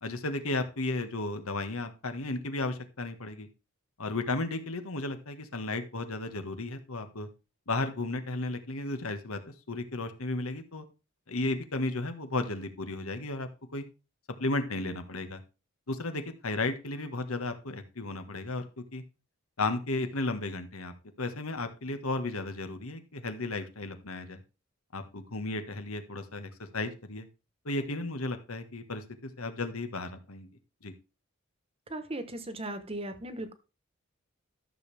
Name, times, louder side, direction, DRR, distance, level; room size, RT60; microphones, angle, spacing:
voice 1, 0.0-3.5 4.0-7.3 7.7-9.4 9.7-10.8 11.3-13.8 14.4-15.4 15.9-19.0 19.6-24.4 24.9-27.3 27.6-30.5 30.8-30.9, left 2 dB, 90° left, 8 dB, 1.6 m, -34 dB
voice 2, 31.9-33.5, right 1 dB, 25° right, 10 dB, 1.2 m, -37 dB
13.5 x 6.7 x 3.5 m, 0.31 s
head